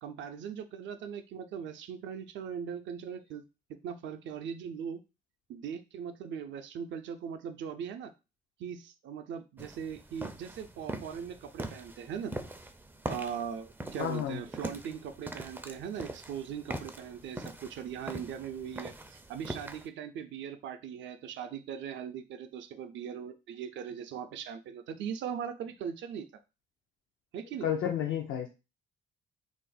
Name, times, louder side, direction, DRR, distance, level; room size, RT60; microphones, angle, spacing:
voice 1, 0.0-3.4 3.7-5.0 5.5-8.1 8.6-12.3 13.1-26.3 27.3-27.7, right 7 dB, 65° right, 7 dB, 0.5 m, -40 dB
sound 1, 9.6-19.9, right 2 dB, 10° right, 0.4 m, -42 dB
voice 2, 14.0-14.4 27.6-28.5, left 9 dB, 75° left, 1 dB, 0.6 m, -31 dB
2.5 x 2.1 x 3.9 m, 0.28 s
supercardioid pair, 70°, 21 cm